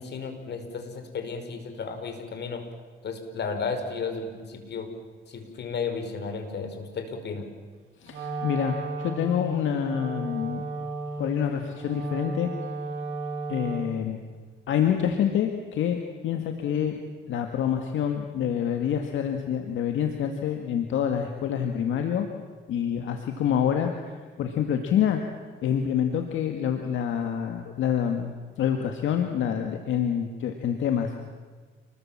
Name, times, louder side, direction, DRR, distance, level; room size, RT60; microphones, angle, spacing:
voice 1, 0.0-2.6 3.0-4.9 5.3-7.4, left 5 dB, 60° left, 7 dB, 5.0 m, -33 dB
voice 2, 8.0-10.6 11.2-12.5 13.5-14.2 14.7-17.0 17.3-22.3 22.7-23.9 24.4-25.2 25.6-31.1, left 9 dB, 80° left, 5 dB, 2.0 m, -27 dB
Wind instrument woodwind instrument, 8.1-14.1, right 3 dB, 90° right, 5.5 m, -34 dB
29.0 x 21.5 x 7.5 m, 1.5 s
cardioid pair, 90°, 20 cm